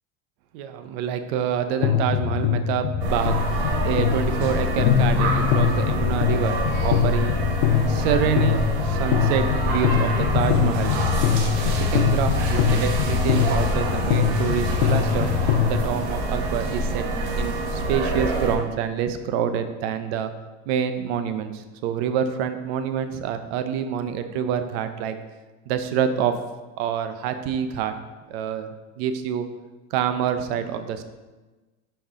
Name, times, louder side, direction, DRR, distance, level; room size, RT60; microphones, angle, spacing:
voice 1, 0.5-3.4 3.8-7.3 7.9-11.0 11.6-15.3 15.7-17.1 17.4-20.3 20.7-25.2 25.7-26.4 26.8-27.9 28.3-28.7 29.0-29.5 29.9-31.0, right 8 dB, 70° right, 9 dB, 0.8 m, -27 dB
sound 1, 1.8-15.8, left 9 dB, 75° left, 0.8 m, -23 dB
sound 2, 3.0-18.6, right 2 dB, 90° right, 1.6 m, -26 dB
9.0 x 4.7 x 3.7 m, 1.2 s
supercardioid pair, 140°, 32 cm